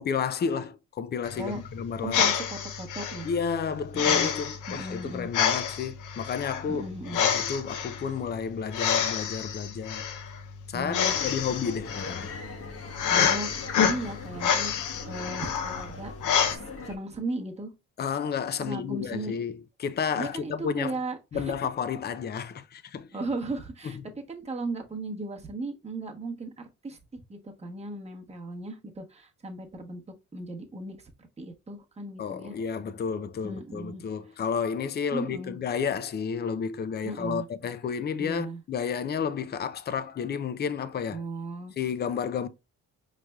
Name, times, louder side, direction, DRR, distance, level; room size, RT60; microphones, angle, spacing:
voice 1, 0.0-2.3 3.2-10.1 10.7-12.3 18.0-20.9 21.3-23.1 23.8-24.0 32.2-41.2 41.8-42.5, left 6 dB, 35° left, 0.5 m, -31 dB
sound 1, 1.2-16.5, left 7 dB, 80° left, 0.8 m, -28 dB
voice 2, 2.0-3.3 3.9-4.3 4.7-5.3 6.7-7.2 10.7-11.1 13.1-14.7 15.0-16.1 16.5-17.7 18.6-19.3 20.1-21.5 23.1-24.0 24.3-30.0 30.3-31.1 31.4-32.5 33.4-34.0 35.1-35.6 37.0-37.5 38.2-38.6 41.1-41.7, right 2 dB, 20° right, 1.0 m, -36 dB
sound 2, 11.1-17.0, left 3 dB, 50° left, 1.1 m, -41 dB
4.9 x 3.2 x 2.3 m
cardioid pair, 90°, 30 cm